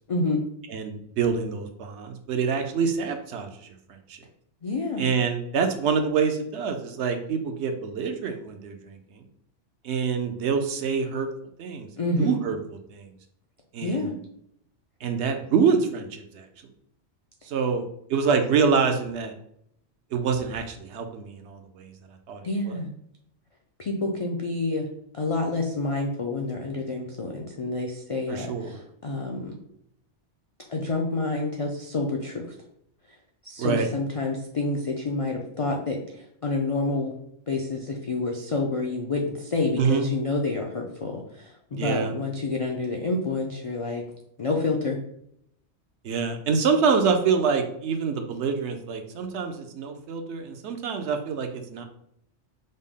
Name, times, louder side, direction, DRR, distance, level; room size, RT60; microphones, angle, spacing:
voice 1, 0.1-0.4 4.6-5.0 12.0-12.3 13.8-14.2 22.4-22.9 23.8-24.9 25.1-29.6 30.7-32.4 33.4-36.0 36.4-37.1 37.5-44.0 44.4-45.0, left 2 dB, 60° left, 0 dB, 0.3 m, -28 dB
voice 2, 0.7-3.7 4.1-4.2 5.0-9.2 9.8-11.3 11.6-11.9 12.2-13.1 13.7-14.1 15.0-16.5 17.4-19.4 20.1-21.9 22.3-22.8 28.3-28.8 33.6-33.9 39.8-40.1 41.7-42.1 46.0-51.8, right 5 dB, 70° right, 6 dB, 0.8 m, -26 dB
5.2 x 2.0 x 3.6 m, 0.72 s
omnidirectional pair, 1.2 m